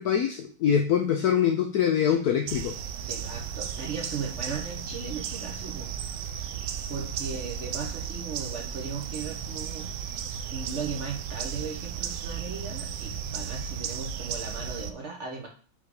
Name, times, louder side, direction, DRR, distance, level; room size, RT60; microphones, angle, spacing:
voice 1, 0.0-2.7, left 8 dB, 80° left, 4 dB, 0.8 m, -24 dB
sound 1, 2.5-14.9, right 8 dB, 75° right, 1.0 m, -35 dB
voice 2, 3.1-5.9 6.9-9.9 10.5-15.5, right 5 dB, 50° right, 1 dB, 0.9 m, -37 dB
5.4 x 3.6 x 4.8 m, 0.41 s
omnidirectional pair, 2.2 m